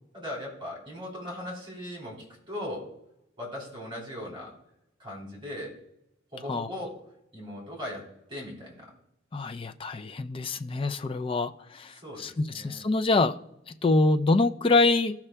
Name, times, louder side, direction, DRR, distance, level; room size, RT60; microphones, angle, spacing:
voice 1, 0.1-2.9 3.4-4.5 5.0-5.8 6.3-7.0 7.3-8.8 11.9-12.8, left 1 dB, 25° right, -2 dB, 3.4 m, -39 dB
voice 2, 9.3-11.9 12.2-13.3 13.7-15.1, left 3 dB, 30° left, 8 dB, 0.4 m, -25 dB
17.0 x 5.9 x 2.2 m, 0.83 s
head